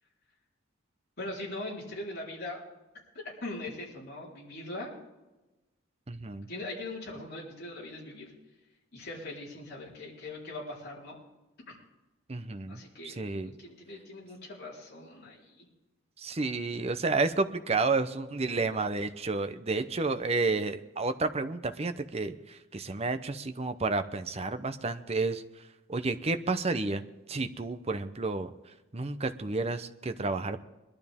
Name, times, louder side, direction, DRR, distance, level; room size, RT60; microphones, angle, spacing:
voice 1, 1.2-2.6 3.4-4.9 6.5-8.3 8.9-11.2 11.7-11.8 12.7-15.7, left 2 dB, 50° left, -5 dB, 4.2 m, -41 dB
voice 2, 6.1-6.5 12.3-13.5 16.2-25.4 25.9-28.5 28.9-30.6, right 3 dB, 30° right, 8 dB, 0.7 m, -31 dB
21.5 x 12.0 x 3.6 m, 1.1 s
head